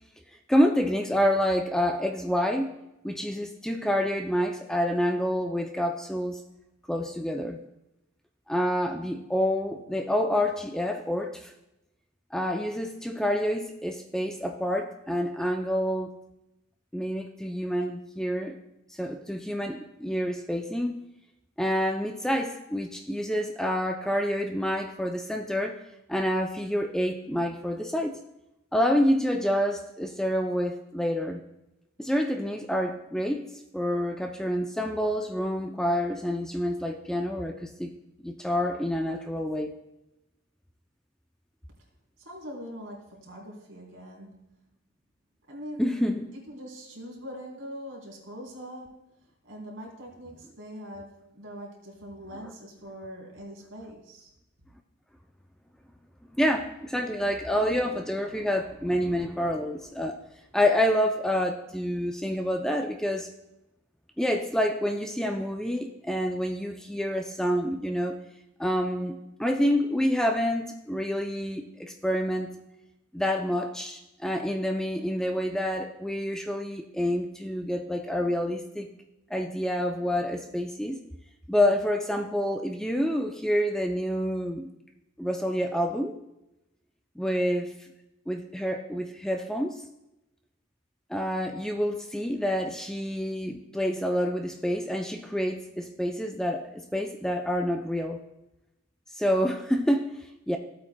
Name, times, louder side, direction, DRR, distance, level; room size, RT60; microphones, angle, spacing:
voice 1, 0.5-2.7 3.0-6.4 6.9-7.6 8.5-11.5 12.3-16.1 16.9-18.6 18.9-21.0 21.6-25.8 26.1-28.2 28.7-31.4 32.0-33.4 33.7-37.9 38.2-39.8 45.8-46.3 56.4-60.2 60.5-63.3 64.2-68.2 68.6-72.5 73.1-78.9 79.3-81.0 81.5-84.7 85.2-86.1 87.2-87.7 88.3-89.9 91.1-98.2 99.1-100.6, equal, 5° left, 3 dB, 0.4 m, -28 dB
voice 2, 42.2-44.5 45.5-45.8 46.3-49.1 49.4-54.3, equal, 70° right, -2 dB, 3.3 m, -42 dB
15.5 x 8.5 x 2.2 m, 0.90 s
head